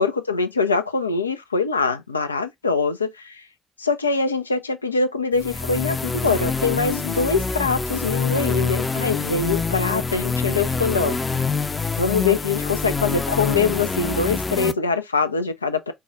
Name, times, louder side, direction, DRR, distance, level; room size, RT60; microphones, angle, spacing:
voice 1, 0.0-3.4 3.8-11.2 12.0-15.9, left 4 dB, 85° left, 0.4 m, -23 dB
sound 1, 5.3-14.7, left 4 dB, 25° left, 0.5 m, -25 dB
4.7 x 2.2 x 3.7 m
figure-of-eight pair, 45°, 0 cm